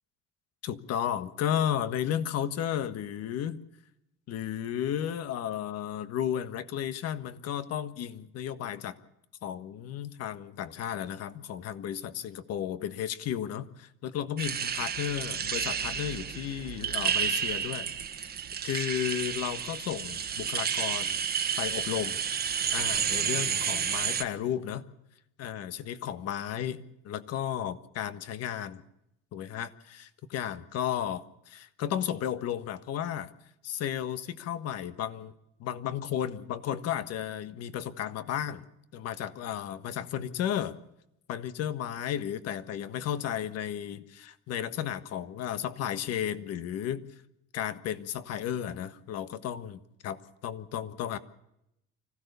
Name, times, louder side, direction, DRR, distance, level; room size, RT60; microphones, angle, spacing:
voice 1, 0.6-3.6 4.3-9.0 9.4-18.4 18.6-21.2 21.6-22.2 22.7-24.8 25.4-28.8 29.3-33.3 33.6-35.3 35.6-38.7 38.9-40.8 41.3-47.1 47.5-51.2, left 10 dB, 55° left, 12 dB, 1.5 m, -33 dB
sound 1, 14.4-24.2, right 7 dB, 30° right, 1.4 m, -31 dB
25.5 x 16.0 x 6.8 m, 0.83 s
cardioid pair, 150°, 29 cm